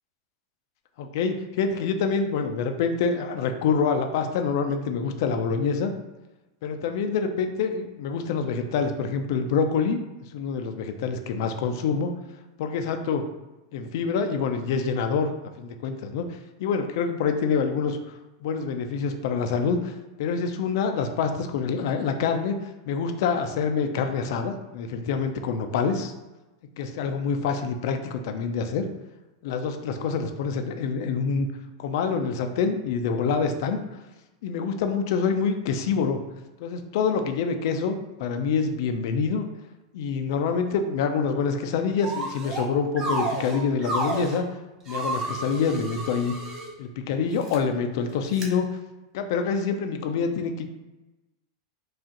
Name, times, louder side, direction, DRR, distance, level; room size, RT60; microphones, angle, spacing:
voice 1, 1.0-5.9 6.6-10.0 10.3-12.1 12.6-13.2 13.7-15.3 15.6-16.2 16.6-19.9 20.2-22.6 22.8-26.1 26.8-28.8 29.4-31.5 31.8-33.8 34.4-36.2 36.6-39.4 39.9-44.4 44.9-46.3 46.8-48.7 49.1-50.7, left 5 dB, 65° left, 7 dB, 0.5 m, -26 dB
sound 1, 42.0-42.7 43.0-44.4 44.9-46.7 47.3-47.6 48.3-48.5, right 2 dB, 25° right, 0.7 m, -31 dB
4.6 x 2.4 x 2.9 m, 1.1 s
hypercardioid pair, 130°, 2 cm